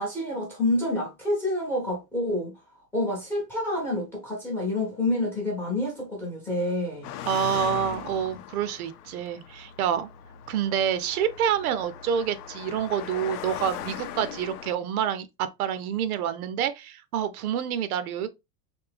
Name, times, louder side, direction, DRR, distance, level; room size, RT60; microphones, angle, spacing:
voice 1, 0.0-2.5 2.9-7.1, left 1 dB, 5° left, 0.6 m, -28 dB
Car passing by, 7.0-14.7, left 10 dB, 75° left, 0.7 m, -39 dB
voice 2, 7.3-10.1 10.5-18.3, right 9 dB, 65° right, 0.6 m, -27 dB
3.4 x 2.7 x 3.3 m
supercardioid pair, 175°, 46 cm